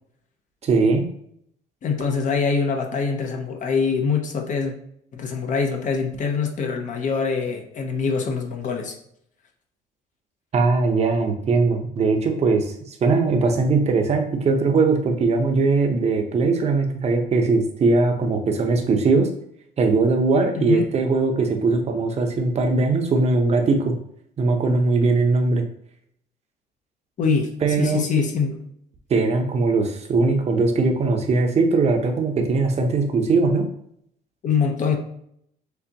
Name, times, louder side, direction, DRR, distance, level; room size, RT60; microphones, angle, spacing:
voice 1, 0.6-1.1 10.5-19.3 19.8-23.9 24.4-25.6 27.6-28.0 29.1-33.7, right 3 dB, 40° right, 4 dB, 0.8 m, -20 dB
voice 2, 1.8-4.7 5.1-8.9 20.6-20.9 27.2-27.5 27.8-28.6 34.4-35.0, left 5 dB, 50° left, 3 dB, 0.8 m, -24 dB
6.7 x 2.4 x 2.9 m, 0.70 s
cardioid pair, 110°, 17 cm